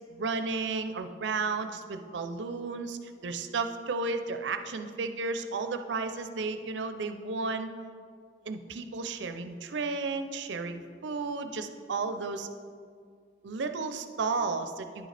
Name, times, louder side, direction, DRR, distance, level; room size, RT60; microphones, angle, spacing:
voice 1, 0.1-7.7 8.5-12.5 13.4-15.1, right 4 dB, 80° right, 8 dB, 0.5 m, -33 dB
9.9 x 6.4 x 3.3 m, 2.1 s
head